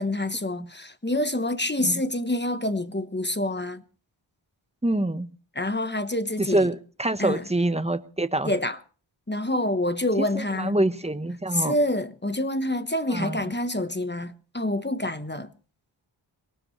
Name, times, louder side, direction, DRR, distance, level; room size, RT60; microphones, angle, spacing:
voice 1, 0.0-3.8 5.5-6.7 7.2-7.5 8.5-8.8 9.3-10.8 11.5-15.5, left 1 dB, 20° left, 1.1 m, -27 dB
voice 2, 4.8-5.3 6.4-8.5 10.2-11.7 13.1-13.4, right 1 dB, 15° right, 1.2 m, -26 dB
22.0 x 18.5 x 3.2 m
wide cardioid pair, 45°, 49 cm